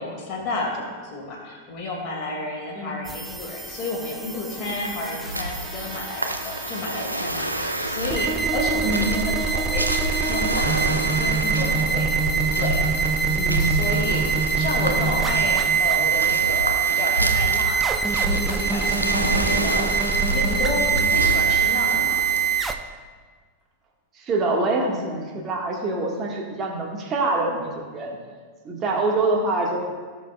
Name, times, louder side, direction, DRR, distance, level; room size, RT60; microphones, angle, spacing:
voice 1, 0.0-12.1 12.6-12.8 13.6-22.2, left 2 dB, 30° left, -4 dB, 2.1 m, -31 dB
sound 1, 3.1-22.7, right 6 dB, 10° right, 0.5 m, -24 dB
sound 2, 4.0-17.8 18.2-18.3, left 1 dB, 55° left, 1.8 m, -43 dB
sound 3, 4.7-22.6, right 1 dB, 85° right, 0.5 m, -29 dB
voice 2, 13.4-13.8 24.1-28.2 28.6-29.8, right 2 dB, 25° right, 0 dB, 1.6 m, -25 dB
17.5 x 6.1 x 2.3 m, 1.5 s
figure-of-eight pair, 90°, 0 cm